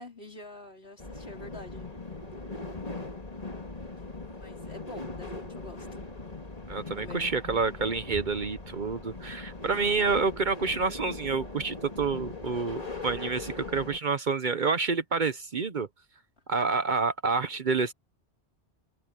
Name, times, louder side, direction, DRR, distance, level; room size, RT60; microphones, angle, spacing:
voice 1, 0.0-1.9 3.5-4.0 4.4-6.0 6.9-7.3, left 2 dB, 65° left, 4.6 m, -47 dB
sound 1, 1.0-14.0, left 2 dB, 35° left, 2.6 m, -40 dB
voice 2, 6.7-15.9 16.5-17.9, right 4 dB, 50° right, 0.9 m, -28 dB
omnidirectional pair, 1.1 m